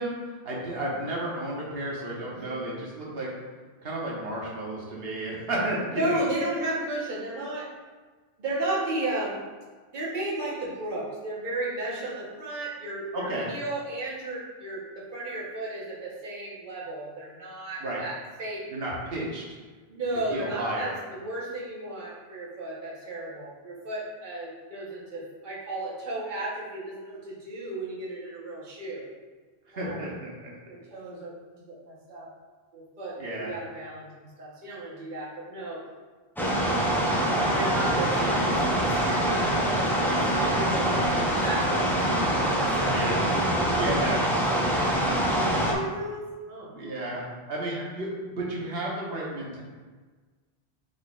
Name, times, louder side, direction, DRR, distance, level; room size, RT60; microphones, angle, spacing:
voice 1, 0.0-3.3 3.8-6.2 13.1-13.5 17.8-18.0 18.7-19.4 20.3-20.9 29.7-30.5 33.2-33.5 40.9-41.2 42.9-43.2 43.7-44.2 44.7-45.0 46.7-49.6, right 1 dB, 65° right, -4 dB, 1.2 m, -32 dB
voice 2, 2.3-2.6 5.9-7.7 8.4-9.4 9.9-18.7 19.9-29.1 29.7-30.1 30.7-32.3 32.7-35.8 36.4-36.8 37.4-43.6 44.5-46.7 47.0-47.2 47.6-47.9, right 2 dB, 50° right, -6 dB, 1.2 m, -34 dB
sound 1, 36.4-45.7, right 1 dB, 5° left, 0.4 m, -24 dB
5.0 x 4.0 x 2.4 m, 1.4 s
omnidirectional pair, 1.1 m